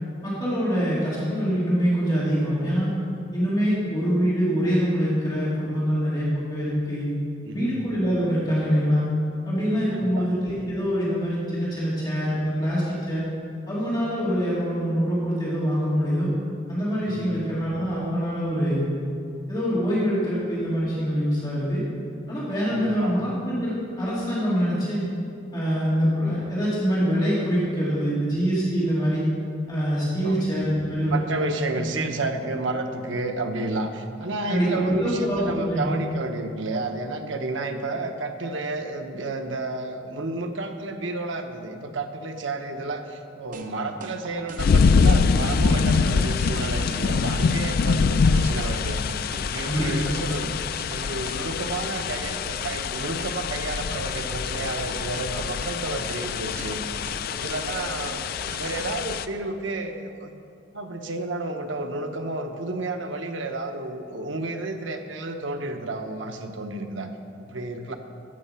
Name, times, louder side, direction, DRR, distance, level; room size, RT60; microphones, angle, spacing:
voice 1, 0.2-2.9 3.3-7.1 7.5-9.1 9.5-13.3 13.7-16.3 16.7-18.8 19.5-21.8 22.3-25.0 25.5-29.3 29.7-31.2 31.7-31.8 34.5-35.9 49.6-50.1, equal, 20° left, -9 dB, 2.5 m, -24 dB
voice 2, 7.4-7.8 9.9-10.3 17.1-17.3 22.7-23.2 30.2-30.5 31.1-50.5 50.9-57.1 57.3-58.2 58.6-60.3 60.7-67.1 67.4-68.0, right 2 dB, 85° right, 5 dB, 0.9 m, -31 dB
sound 1, 43.5-59.0, right 2 dB, 45° right, 0.7 m, -41 dB
sound 2, 44.6-59.3, left 5 dB, 50° left, 0.3 m, -24 dB
14.0 x 5.8 x 5.6 m, 2.4 s
head